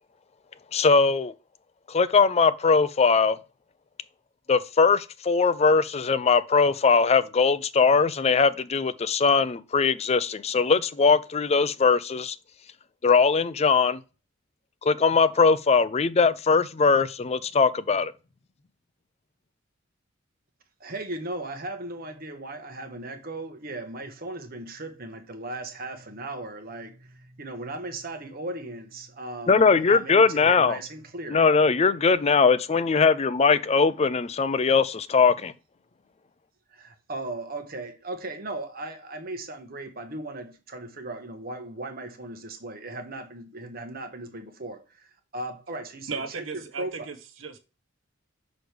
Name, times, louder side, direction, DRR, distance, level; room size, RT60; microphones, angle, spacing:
voice 1, 0.7-1.3 1.9-3.4 4.5-12.4 13.0-14.0 14.8-18.1 29.5-30.8 31.3-35.5, left 5 dB, 30° left, 0.4 m, -21 dB
voice 2, 20.8-31.9 33.0-33.3 36.7-47.2, right 2 dB, 50° right, 1.2 m, -37 dB
voice 3, 46.1-47.6, right 5 dB, 75° right, 1.1 m, -36 dB
6.2 x 4.9 x 3.3 m
head